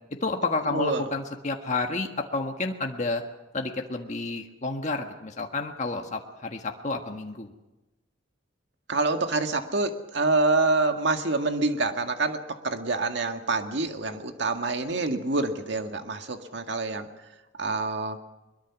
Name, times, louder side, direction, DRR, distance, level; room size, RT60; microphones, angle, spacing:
voice 1, 0.2-3.2 3.5-7.5, left 3 dB, 40° left, 3 dB, 1.6 m, -30 dB
voice 2, 0.7-1.1 8.9-17.1 17.6-18.2, right 3 dB, 60° right, 6 dB, 1.9 m, -26 dB
22.5 x 22.5 x 6.1 m, 1.0 s
head